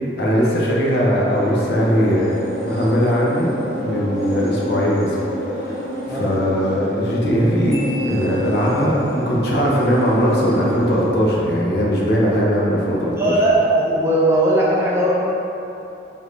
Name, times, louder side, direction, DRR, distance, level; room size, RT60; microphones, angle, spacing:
voice 1, 0.2-2.3 2.6-3.5 3.8-5.2 5.5-7.8 8.1-13.3, equal, 55° left, -4 dB, 0.7 m, -19 dB
sound 1, 1.3-11.1, equal, 40° right, 1.1 m, -29 dB
Marimba xylophone, 7.7-9.1, equal, 85° left, 1.5 m, -37 dB
voice 2, 13.2-15.1, right 1 dB, 15° right, -7 dB, 0.5 m, -18 dB
4.9 x 2.7 x 3.2 m, 3.0 s
head